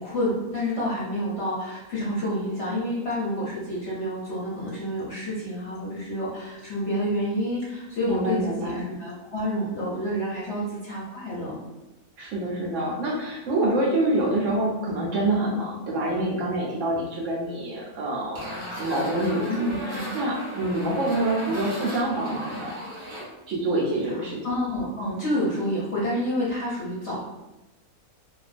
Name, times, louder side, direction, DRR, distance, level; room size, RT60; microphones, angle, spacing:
voice 1, 0.0-11.7 19.5-20.1 24.0-27.2, equal, 55° left, -6 dB, 0.8 m, -29 dB
voice 2, 8.1-8.8 12.2-22.7 23.5-24.4, right 1 dB, 70° right, -3 dB, 0.8 m, -26 dB
sound 1, 18.3-23.2, equal, 40° right, 0.8 m, -36 dB
2.4 x 2.2 x 2.4 m, 1.0 s
omnidirectional pair, 1.5 m